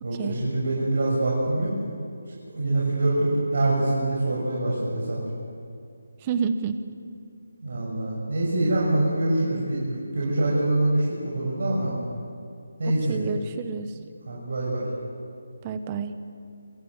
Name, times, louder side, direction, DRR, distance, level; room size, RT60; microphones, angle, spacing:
voice 1, 0.0-1.7 2.3-5.2 7.6-11.9 12.8-13.2 14.3-14.8, right 2 dB, 65° right, -4 dB, 6.8 m, -25 dB
voice 2, 6.2-6.8 12.8-13.9 15.6-16.2, right 6 dB, 20° right, 10 dB, 1.1 m, -29 dB
27.0 x 13.0 x 9.1 m, 2.4 s
figure-of-eight pair, 165°, 0 cm